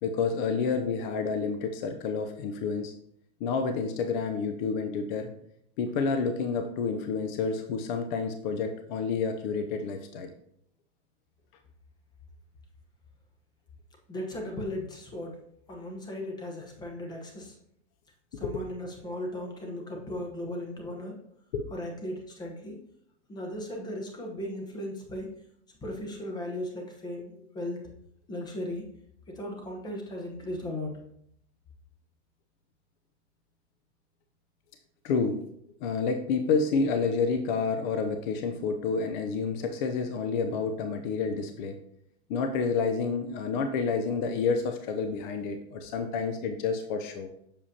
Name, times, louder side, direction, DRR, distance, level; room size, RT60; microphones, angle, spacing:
voice 1, 0.0-2.9 3.4-5.3 5.8-10.3 18.4-18.6 21.5-21.7 35.0-35.4 35.8-41.8 42.3-47.3, left 5 dB, 45° left, 6 dB, 0.6 m, -29 dB
voice 2, 14.1-15.4 15.7-17.5 18.4-21.2 21.7-22.8 23.3-25.3 25.8-27.8 28.3-28.8 29.3-30.9, left 1 dB, 10° left, 1 dB, 1.0 m, -37 dB
6.9 x 4.9 x 2.8 m, 0.71 s
hypercardioid pair, 140°, 35 cm